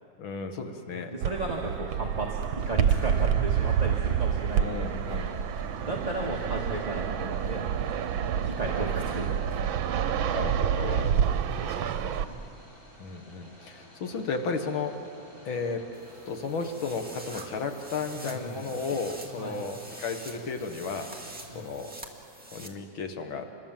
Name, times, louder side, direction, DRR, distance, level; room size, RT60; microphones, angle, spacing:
voice 1, 0.2-1.6 4.5-5.5 10.3-11.2 13.0-15.0 15.5-15.8 16.3-21.9 22.5-23.5, left 4 dB, 90° left, 5 dB, 2.3 m, -34 dB
voice 2, 0.8-2.4 2.7-4.9 5.3-5.5 5.9-7.6 8.0-9.5 10.8-12.4 18.1-18.6 19.4-19.6 21.5-21.7, right 2 dB, 20° right, -2 dB, 1.9 m, -35 dB
Fixed-wing aircraft airplane, 1.2-12.2, right 8 dB, 85° right, 1.6 m, -28 dB
sound 1, 2.5-21.6, equal, 45° left, 7.4 m, -53 dB
sound 2, 15.9-22.7, right 1 dB, 5° right, 1.9 m, -46 dB
27.5 x 22.0 x 7.4 m, 2.6 s
omnidirectional pair, 2.1 m